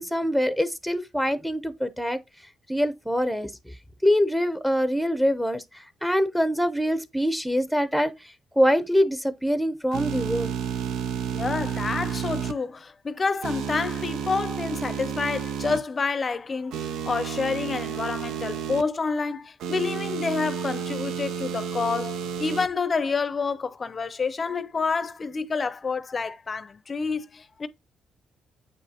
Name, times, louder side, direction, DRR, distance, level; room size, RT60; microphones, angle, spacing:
voice 1, 0.0-2.2 2.7-3.7 4.0-10.6, equal, ahead, 0.7 m, -24 dB
sound 1, 9.9-12.5 13.4-15.8 16.7-18.8 19.6-22.7, right 8 dB, 85° right, 0.6 m, -31 dB
voice 2, 11.3-27.7, left 4 dB, 35° left, 0.6 m, -28 dB
7.8 x 5.3 x 2.9 m
cardioid pair, 90°, 0 cm